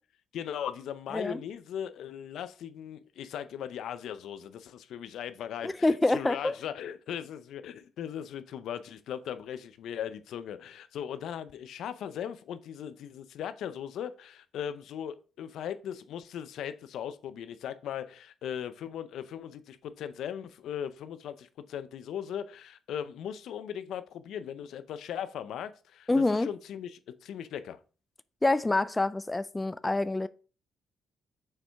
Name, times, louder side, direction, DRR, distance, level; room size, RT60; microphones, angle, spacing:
voice 1, 0.3-27.8, left 9 dB, 75° left, 0.5 m, -38 dB
voice 2, 5.6-6.5 26.1-26.5 28.4-30.3, left 2 dB, 15° left, 0.3 m, -26 dB
6.6 x 4.5 x 3.4 m
cardioid pair, 90°, 0 cm